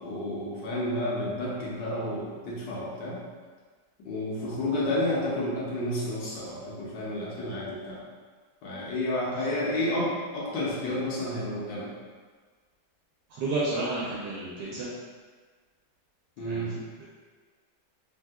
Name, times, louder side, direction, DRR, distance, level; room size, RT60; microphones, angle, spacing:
voice 1, 0.0-3.2 4.0-8.0 8.6-11.9 16.4-16.7, left 1 dB, 85° left, -6 dB, 1.3 m, -30 dB
voice 2, 13.3-14.9 16.4-17.1, right 2 dB, 80° right, -7 dB, 1.2 m, -32 dB
3.3 x 2.6 x 2.3 m, 1.5 s
omnidirectional pair, 1.8 m